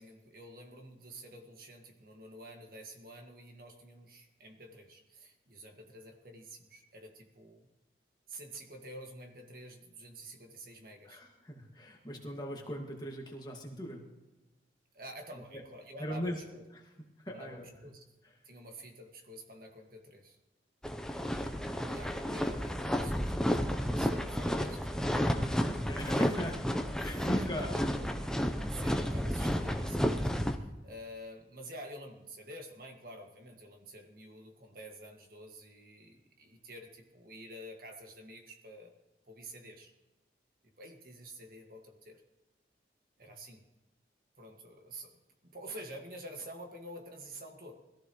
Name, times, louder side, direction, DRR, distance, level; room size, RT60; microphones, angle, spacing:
voice 1, 0.0-7.7 8.3-11.2 14.9-16.6 17.3-18.0 18.5-20.4 21.8-24.8 25.5-26.0 27.0-27.5 28.4-38.9 39.3-39.9 40.8-42.2 43.2-43.6 44.4-47.7, right 1 dB, 55° right, 3 dB, 2.0 m, -49 dB
voice 2, 11.0-14.0 15.5-15.6 16.0-16.4 17.2-17.7 21.2-21.7 25.8-26.6 27.0-28.1, equal, 25° left, 0 dB, 2.1 m, -39 dB
sound 1, 20.8-30.6, equal, 5° left, 0.7 m, -32 dB
21.5 x 14.5 x 3.2 m, 1.1 s
head